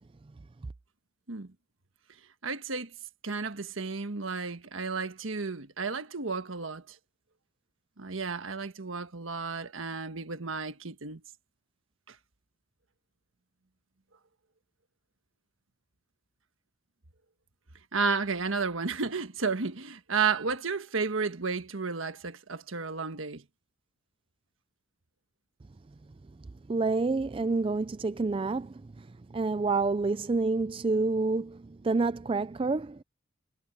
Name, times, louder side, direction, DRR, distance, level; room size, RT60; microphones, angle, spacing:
voice 1, 2.4-2.9 3.2-7.0 8.0-11.2 12.1-12.2 17.9-23.4, right 4 dB, 85° right, 1.4 m, -32 dB
voice 2, 26.7-28.7 29.3-31.6 31.8-33.0, right 3 dB, 25° right, 0.4 m, -28 dB
head